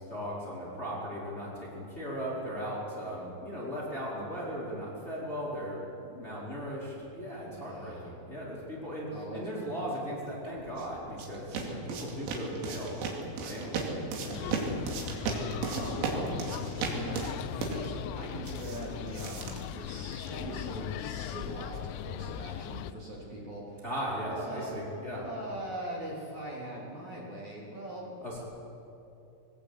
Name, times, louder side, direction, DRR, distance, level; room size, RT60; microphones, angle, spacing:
voice 1, 0.0-13.0 13.4-14.7 23.8-25.2 28.2-28.4, equal, 15° left, -5 dB, 4.2 m, -37 dB
voice 2, 7.5-8.1 9.1-9.4 9.7-9.9 15.7-16.4 16.9-17.2 17.7-23.8 24.3-24.7 25.1-28.0, right 1 dB, 40° right, -4 dB, 4.3 m, -41 dB
Footsteps - sneakers on concrete (running), 10.5-20.5, right 4 dB, 80° right, 5.3 m, -36 dB
sound 1, 14.3-22.9, left 11 dB, 90° left, 3.4 m, -39 dB
22.5 x 20.0 x 8.5 m, 2.8 s
omnidirectional pair, 6.0 m